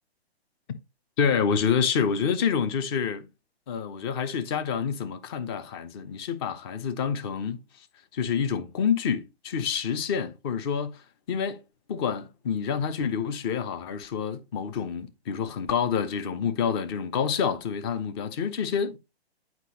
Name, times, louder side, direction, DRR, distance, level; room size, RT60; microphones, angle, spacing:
voice 1, 1.2-3.2 3.7-7.9 8.1-11.6 11.9-19.0, left 7 dB, 25° left, 0.6 m, -28 dB
8.2 x 4.9 x 2.8 m
hypercardioid pair, 145°, 32 cm